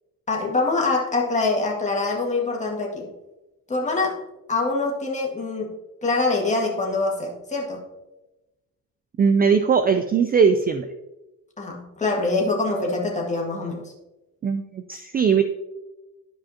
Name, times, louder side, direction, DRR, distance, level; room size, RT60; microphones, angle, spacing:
voice 1, 0.3-3.1 3.7-4.2 4.5-7.8 11.6-13.9, left 3 dB, 20° left, -1 dB, 1.9 m, -24 dB
voice 2, 9.2-10.9 14.4-15.4, right 6 dB, 25° right, 9 dB, 0.4 m, -19 dB
12.5 x 5.1 x 2.8 m, 1.0 s
cardioid pair, 110°, 35 cm